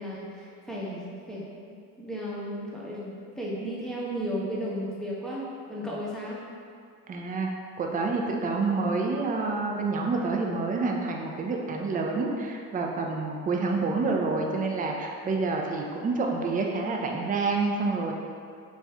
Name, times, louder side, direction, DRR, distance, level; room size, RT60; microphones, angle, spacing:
voice 1, 0.0-1.5 2.0-6.4, equal, ahead, -6 dB, 0.7 m, -34 dB
voice 2, 7.1-7.5 7.8-18.1, right 3 dB, 25° right, 1 dB, 0.3 m, -28 dB
3.1 x 2.6 x 2.2 m, 2.4 s
hypercardioid pair, 50°, 40 cm